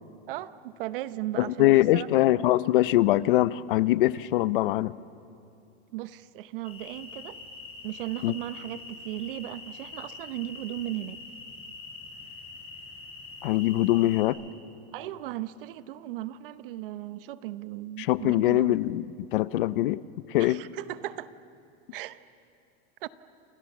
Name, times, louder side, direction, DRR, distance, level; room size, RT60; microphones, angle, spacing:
voice 1, 0.3-2.3 5.9-7.4 7.8-11.2 14.9-18.8 20.4-21.3 21.9-22.2 23.0-23.1, right 14 dB, 55° right, 14 dB, 0.9 m, -36 dB
voice 2, 1.4-4.9 8.2-8.3 13.4-14.4 18.0-19.1 19.3-20.0 20.3-20.6, left 16 dB, 55° left, 17 dB, 0.6 m, -23 dB
sound 1, 6.6-14.2, left 3 dB, 15° left, 6.7 m, -44 dB
28.5 x 28.0 x 7.3 m, 2.5 s
supercardioid pair, 180°, 33 cm